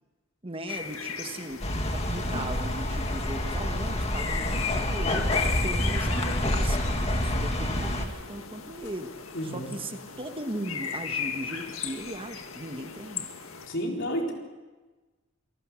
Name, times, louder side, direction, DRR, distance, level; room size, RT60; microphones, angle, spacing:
voice 1, 0.4-1.6 1.9-9.1 9.4-13.3, right 1 dB, 25° right, 7 dB, 1.3 m, -38 dB
sound 1, 0.7-13.7, left 6 dB, 80° left, 1.8 m, -37 dB
sound 2, 1.6-8.1, left 1 dB, 30° left, 2.1 m, -28 dB
voice 2, 9.3-9.7 13.7-14.3, equal, 60° left, 0 dB, 4.2 m, -30 dB
27.5 x 18.5 x 6.3 m, 1.2 s
head